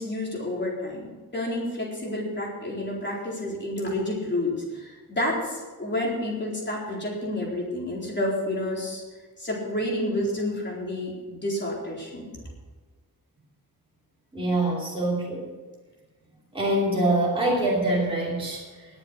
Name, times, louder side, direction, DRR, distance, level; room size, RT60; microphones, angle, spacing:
voice 1, 0.0-9.0 9.4-12.3, left 1 dB, 30° left, -3 dB, 4.2 m, -29 dB
voice 2, 14.3-15.4 16.5-18.9, right 1 dB, 15° right, -5 dB, 3.0 m, -25 dB
20.0 x 7.5 x 6.3 m, 1.4 s
wide cardioid pair, 165°, 36 cm